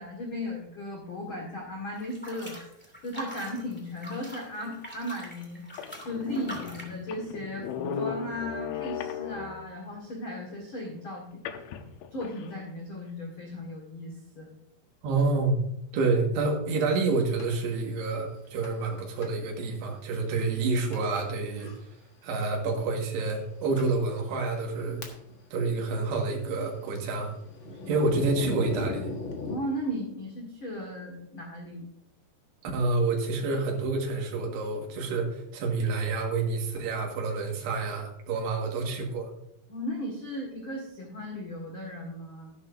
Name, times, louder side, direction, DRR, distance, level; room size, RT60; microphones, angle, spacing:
voice 1, 0.0-2.6 3.0-11.3 12.1-14.5 27.9-28.3 29.5-31.8 39.7-42.5, left 1 dB, 45° left, -1 dB, 1.7 m, -36 dB
sound 1, 1.9-7.0, equal, 5° left, 1.2 m, -43 dB
sound 2, 4.8-4.9 5.4-5.5 5.7-9.8 11.5-12.5, left 7 dB, 80° left, 2.6 m, -37 dB
voice 2, 15.0-15.6 15.9-21.7 22.2-25.0 25.5-27.3 27.9-29.1 32.6-39.3, right 3 dB, 75° right, 0 dB, 3.8 m, -28 dB
Thunder, 17.4-17.5 18.6-18.9 19.2-19.3 20.0-20.1 20.9-21.2 21.6-21.8 22.7-22.8 23.4-23.5 23.8-23.9 24.5-25.5 25.7-29.6, left 3 dB, 60° left, 1.2 m, -38 dB
13.0 x 11.5 x 2.7 m, 0.78 s
omnidirectional pair, 4.9 m